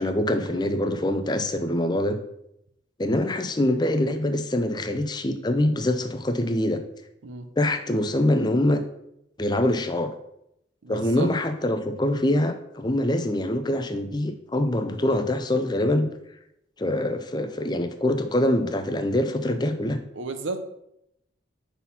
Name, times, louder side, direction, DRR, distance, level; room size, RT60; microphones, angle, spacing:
voice 1, 0.0-2.2 3.0-6.8 7.6-8.8 9.4-10.1 10.9-16.1 16.8-20.0, left 1 dB, 20° left, 8 dB, 0.5 m, -24 dB
voice 2, 10.8-11.3 20.1-20.6, right 3 dB, 90° right, 8 dB, 0.8 m, -33 dB
5.7 x 4.2 x 5.7 m, 0.79 s
head